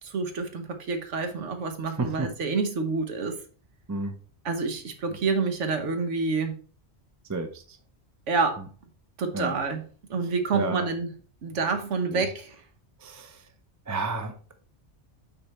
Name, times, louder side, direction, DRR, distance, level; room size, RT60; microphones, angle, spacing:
voice 1, 0.0-3.4 4.4-6.6 8.3-8.6 9.2-9.8 10.1-11.1 11.4-12.6, right 4 dB, 90° right, 7 dB, 1.4 m, -28 dB
voice 2, 2.0-2.3 3.9-4.1 7.3-7.8 9.3-9.6 10.5-10.9 12.1-12.2 13.0-13.4 13.9-14.5, right 3 dB, 20° right, 6 dB, 0.6 m, -31 dB
6.6 x 4.2 x 4.2 m, 0.39 s
omnidirectional pair, 1.2 m